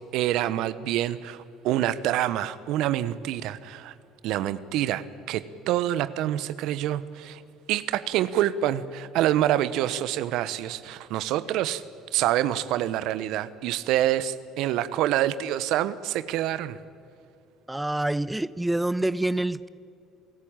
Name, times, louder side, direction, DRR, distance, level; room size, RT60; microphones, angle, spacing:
voice 1, 0.1-3.9 4.2-7.4 7.7-11.8 12.1-16.8, right 12 dB, 70° right, 15 dB, 1.0 m, -26 dB
voice 2, 17.7-19.7, right 1 dB, 10° right, 17 dB, 0.7 m, -26 dB
29.0 x 16.5 x 8.9 m, 2.5 s
hypercardioid pair, 65°, 0 cm